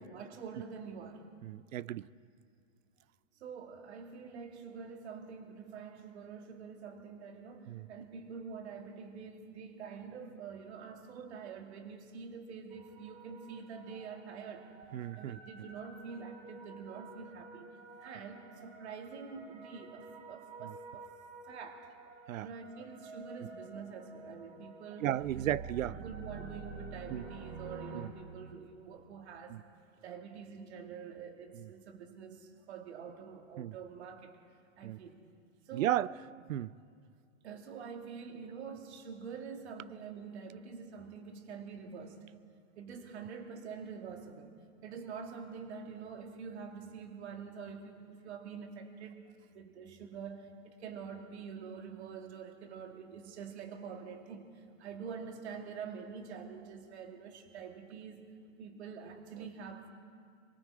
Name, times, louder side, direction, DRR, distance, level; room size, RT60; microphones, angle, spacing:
voice 1, 0.0-1.3 3.4-14.7 15.1-17.7 18.0-21.1 21.5-21.9 22.4-25.5 25.9-29.6 30.0-34.4 34.8-35.2 35.7-36.1 37.4-42.2 42.8-44.5 44.8-49.2 49.5-58.3 58.6-59.9, right 6 dB, 55° right, 3 dB, 2.5 m, -46 dB
voice 2, 1.4-2.1 7.7-7.9 14.9-15.4 20.6-20.7 22.3-22.5 25.0-26.0 27.1-27.2 27.9-28.1 29.5-29.6 31.5-31.7 33.6-33.7 34.8-35.0 35.7-36.1 36.5-36.7, right 12 dB, 75° right, 20 dB, 0.6 m, -34 dB
sound 1, 12.7-28.1, right 3 dB, 15° right, 1.7 m, -49 dB
24.5 x 23.5 x 4.9 m, 2.2 s
hypercardioid pair, 170°, 40 cm